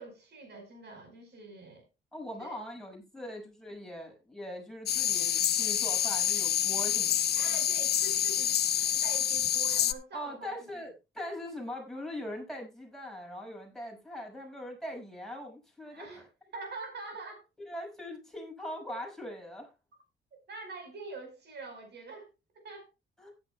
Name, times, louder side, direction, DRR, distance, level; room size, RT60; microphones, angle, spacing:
voice 1, 0.0-1.8 2.4-2.6 7.3-10.6 15.9-16.2 16.5-17.4 20.3-22.3 22.5-22.9, right 3 dB, 60° right, 4.8 m, -45 dB
voice 2, 2.1-7.6 10.1-16.3 17.6-19.7 23.2-23.3, left 1 dB, ahead, 6.4 m, -41 dB
sound 1, 4.9-9.9, left 10 dB, 55° left, 0.8 m, -27 dB
15.5 x 11.0 x 2.3 m
cardioid pair, 90°, 20 cm